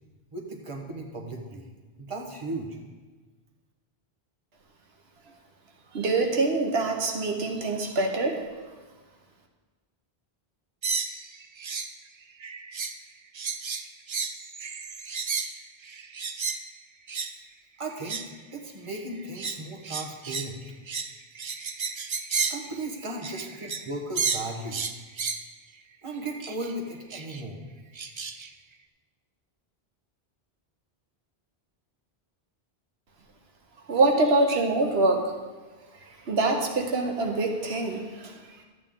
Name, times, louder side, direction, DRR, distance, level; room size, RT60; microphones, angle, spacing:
voice 1, 0.3-1.7 2.0-2.8 17.8-18.2 18.5-20.7 22.5-24.8 26.0-27.6, right 2 dB, 30° right, 1 dB, 1.3 m, -36 dB
voice 2, 5.9-8.5 33.9-35.3 36.0-38.6, right 2 dB, 85° right, 3 dB, 1.2 m, -25 dB
sound 1, 10.8-11.9 12.2-13.0 13.3-16.6 17.1-17.3 17.9-18.4 18.9-23.9 24.2-25.5 26.4-26.7 27.1-27.4 28.0-28.5, right 5 dB, 45° right, 0.3 m, -33 dB
12.5 x 8.7 x 3.7 m, 1.3 s
omnidirectional pair, 1.0 m